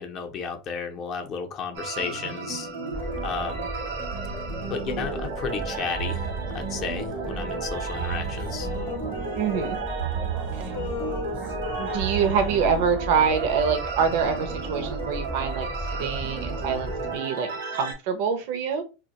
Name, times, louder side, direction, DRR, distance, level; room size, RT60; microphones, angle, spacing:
voice 1, 0.0-2.7 3.2-3.7 4.7-6.3 6.5-8.7, left 6 dB, 40° left, 0.5 m, -33 dB
sound 1, 1.7-17.9, right 4 dB, 85° right, 0.9 m, -33 dB
sound 2, 2.9-17.2, right 2 dB, 10° right, 0.5 m, -36 dB
Male singing, 7.9-10.3 10.6-12.7, left 6 dB, 80° left, 0.6 m, -39 dB
voice 2, 9.3-9.8 10.5-10.8 11.8-15.7 16.0-18.8, right 6 dB, 60° right, 0.5 m, -25 dB
2.2 x 2.1 x 2.8 m
supercardioid pair, 120°, 0 cm